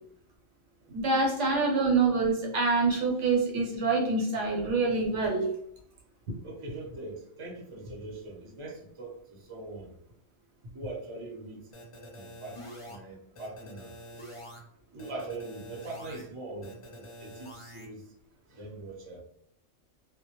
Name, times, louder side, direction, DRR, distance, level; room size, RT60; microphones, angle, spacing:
voice 1, 0.9-5.5, right 3 dB, 70° right, 0 dB, 1.0 m, -26 dB
voice 2, 6.4-9.1 9.5-9.9 10.7-11.6 12.1-12.5 12.9-13.9 14.9-16.7 17.2-18.0 18.5-19.2, right 2 dB, 30° right, -2 dB, 0.6 m, -41 dB
sound 1, 11.7-13.0 13.4-14.6 15.0-16.2 16.6-17.9, equal, 55° left, 0.3 m, -46 dB
2.2 x 2.1 x 2.9 m, 0.70 s
omnidirectional pair, 1.3 m